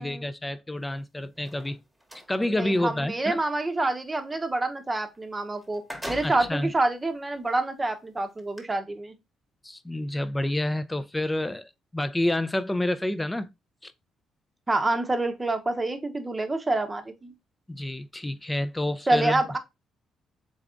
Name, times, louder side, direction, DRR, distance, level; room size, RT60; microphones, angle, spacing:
voice 1, 0.0-1.8 2.3-3.4 6.2-6.7 9.6-13.5 13.8-13.9 17.7-19.4, left 1 dB, 10° left, 0.5 m, -28 dB
sound 1, 1.3-2.3 5.1-5.2 5.6-6.6 7.3-7.4 8.4-8.6, equal, 5° right, 1.2 m, -39 dB
voice 2, 2.6-5.8 6.1-9.1 14.7-17.3 19.1-19.6, right 2 dB, 20° right, 0.8 m, -27 dB
3.7 x 3.4 x 3.7 m
cardioid pair, 90°, 0 cm